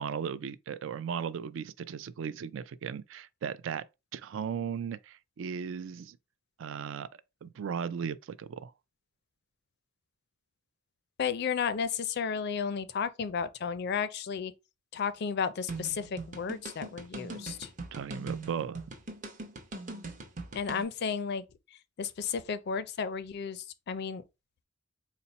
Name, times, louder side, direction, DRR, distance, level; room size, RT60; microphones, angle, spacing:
voice 1, 0.0-3.8 4.1-6.2 6.6-8.7 17.9-18.8, right 7 dB, 70° right, 0.3 m, -36 dB
voice 2, 11.2-14.5 14.9-17.7 20.5-21.4 22.0-24.2, left 6 dB, 55° left, 0.4 m, -33 dB
sound 1, 15.7-20.8, right 3 dB, 40° right, 0.7 m, -41 dB
4.1 x 2.0 x 4.0 m
head